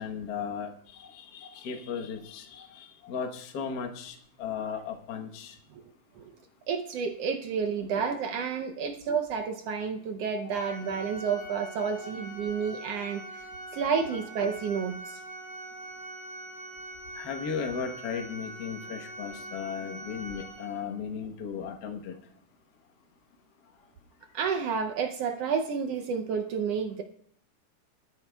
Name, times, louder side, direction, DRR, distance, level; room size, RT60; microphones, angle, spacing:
voice 1, 0.0-5.6 10.4-10.7 12.0-12.1 17.1-22.1, left 6 dB, 65° left, 3 dB, 1.0 m, -36 dB
voice 2, 6.7-13.2 13.7-15.2 24.3-27.0, right 6 dB, 75° right, 5 dB, 1.4 m, -30 dB
Organ, 10.5-21.1, right 1 dB, 40° right, 1.9 m, -43 dB
21.0 x 13.0 x 2.3 m, 0.65 s
omnidirectional pair, 3.5 m